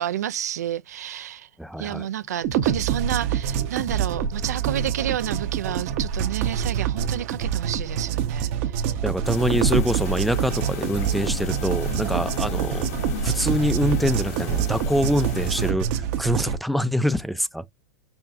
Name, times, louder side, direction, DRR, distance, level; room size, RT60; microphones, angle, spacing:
voice 1, 0.0-1.5 1.8-8.8 11.9-12.2, right 11 dB, 85° right, 0.4 m, -30 dB
voice 2, 1.6-2.0 9.0-12.9 13.2-17.6, equal, ahead, 0.3 m, -25 dB
sound 1, 2.4-16.6, right 8 dB, 50° right, 0.8 m, -26 dB
sound 2, 9.2-15.7, left 8 dB, 65° left, 0.9 m, -35 dB
5.6 x 2.2 x 2.6 m
hypercardioid pair, 120°, 9 cm